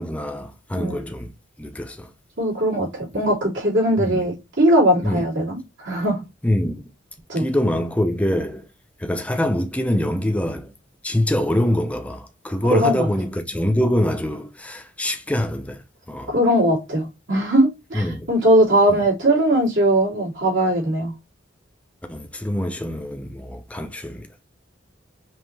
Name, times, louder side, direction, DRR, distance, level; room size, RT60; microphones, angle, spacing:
voice 1, 0.0-1.3 1.6-2.1 4.0-4.3 5.0-5.3 6.4-6.8 7.4-8.7 9.0-10.7 11.0-15.8 16.1-16.3 17.9-18.3 18.9-19.0 22.1-24.4, left 1 dB, 5° left, 0.5 m, -24 dB
voice 2, 0.7-1.1 2.4-5.6 5.8-6.2 7.3-7.5 12.7-13.1 16.3-21.1, right 1 dB, 75° right, 3.0 m, -19 dB
5.2 x 3.1 x 3.2 m
head